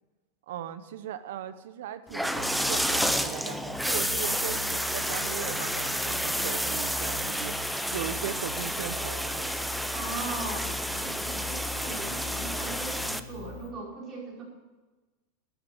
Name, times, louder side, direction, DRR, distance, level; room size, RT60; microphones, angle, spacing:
voice 1, 0.5-7.6 7.9-9.6, right 10 dB, 75° right, 12 dB, 1.0 m, -38 dB
sound 1, 2.1-13.2, equal, ahead, 0.5 m, -30 dB
sound 2, 2.4-13.7, left 3 dB, 85° left, 2.1 m, -42 dB
voice 2, 9.9-14.4, right 3 dB, 25° right, -4 dB, 5.2 m, -39 dB
12.0 x 9.2 x 8.0 m, 1.2 s
supercardioid pair, 150°, 0 cm